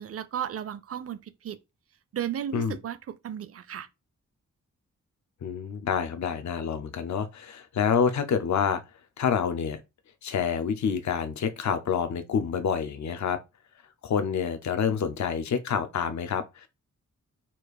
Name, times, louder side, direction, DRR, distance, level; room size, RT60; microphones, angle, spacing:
voice 1, 0.0-1.6 2.1-3.9, right 10 dB, 50° right, 0.5 m, -34 dB
voice 2, 5.4-8.8 9.2-9.8 10.2-13.4 14.0-16.7, left 7 dB, 65° left, 0.7 m, -27 dB
4.3 x 2.5 x 4.8 m
wide cardioid pair, 100°, 30 cm